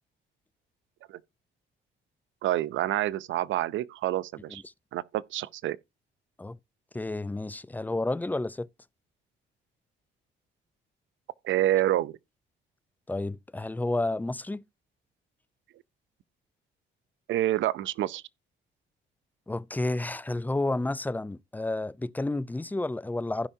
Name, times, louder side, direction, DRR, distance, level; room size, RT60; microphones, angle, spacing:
voice 1, 2.4-4.6 4.9-5.8 11.4-12.1 17.3-18.2, right 14 dB, 75° right, 0.5 m, -27 dB
voice 2, 6.9-8.7 13.1-14.6 19.5-23.5, left 2 dB, 10° left, 0.5 m, -31 dB
15.5 x 5.5 x 2.7 m
cardioid pair, 90°, 20 cm